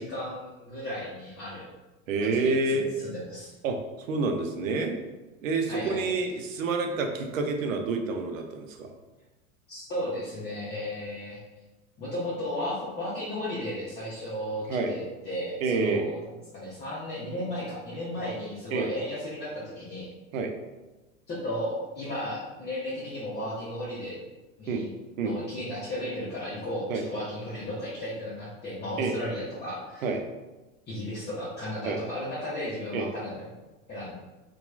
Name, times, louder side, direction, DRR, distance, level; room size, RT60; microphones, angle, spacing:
voice 1, 0.0-1.7 2.2-3.5 5.7-6.1 9.7-11.4 12.0-16.2 16.5-20.1 21.3-24.2 24.6-24.9 25.2-30.1 30.9-33.4 33.9-34.1, left 1 dB, 25° left, -8 dB, 0.7 m, -34 dB
voice 2, 2.1-2.8 3.6-3.8 4.1-5.0 5.4-8.9 14.7-14.9 15.6-16.1 18.7-18.9 20.3-20.5 24.7-24.8 25.2-25.3 26.9-27.0 29.0-29.1 30.0-30.2 31.8-32.0 32.9-33.1, right 3 dB, 80° right, 4 dB, 0.5 m, -28 dB
2.8 x 2.3 x 2.3 m, 1.1 s
hypercardioid pair, 90°, 39 cm